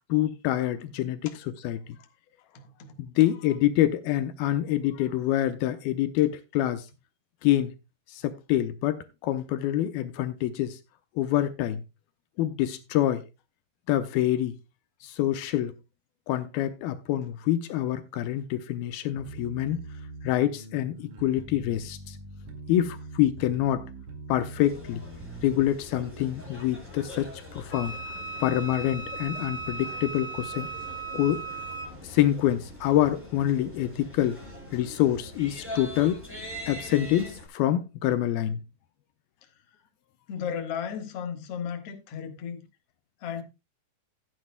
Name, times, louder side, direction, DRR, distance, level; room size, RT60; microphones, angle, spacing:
voice 1, 0.1-2.0 3.0-6.9 7.4-7.7 8.1-10.8 11.2-11.8 12.4-13.3 13.9-14.6 15.0-15.8 16.3-19.8 20.2-22.2 22.7-23.9 24.3-25.0 25.4-30.7 31.1-31.6 32.0-34.4 34.7-36.2 36.7-38.6, left 13 dB, 80° left, 2.5 m, -26 dB
voice 2, 2.4-3.0 3.2-3.3 40.3-42.6 43.2-43.4, left 7 dB, 55° left, 1.9 m, -35 dB
sound 1, 19.1-25.7, right 2 dB, 60° right, 3.3 m, -43 dB
sound 2, 24.6-37.5, left 1 dB, 5° right, 4.7 m, -43 dB
Wind instrument woodwind instrument, 27.7-31.9, right 3 dB, 30° left, 2.8 m, -37 dB
15.0 x 9.6 x 2.2 m
omnidirectional pair, 4.6 m